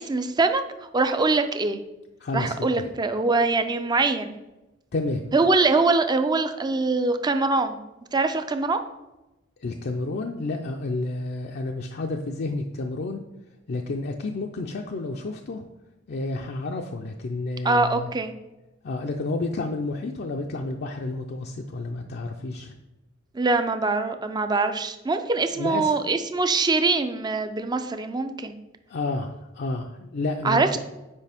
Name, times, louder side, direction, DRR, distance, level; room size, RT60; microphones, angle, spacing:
voice 1, 0.0-1.8 2.3-4.3 5.3-7.8 8.1-8.8 17.6-18.3 23.3-28.5 30.4-30.8, right 3 dB, 20° right, 8 dB, 0.5 m, -23 dB
voice 2, 2.2-2.9 4.9-5.3 9.6-13.2 13.7-15.6 16.1-18.1 18.8-22.7 25.6-25.9 28.9-30.8, left 2 dB, 55° left, 2 dB, 0.5 m, -30 dB
8.2 x 5.1 x 3.5 m, 1.0 s
head